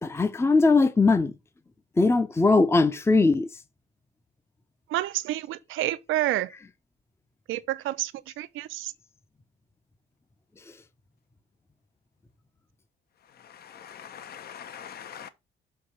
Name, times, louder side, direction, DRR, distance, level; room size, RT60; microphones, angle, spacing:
voice 1, 0.0-1.3 2.0-3.5, left 3 dB, 15° left, 0.6 m, -20 dB
voice 2, 4.9-6.5 7.5-8.9, right 15 dB, 85° right, 0.6 m, -29 dB
voice 3, 13.4-15.3, left 8 dB, 50° left, 0.7 m, -43 dB
6.6 x 2.9 x 5.5 m
cardioid pair, 90°, 20 cm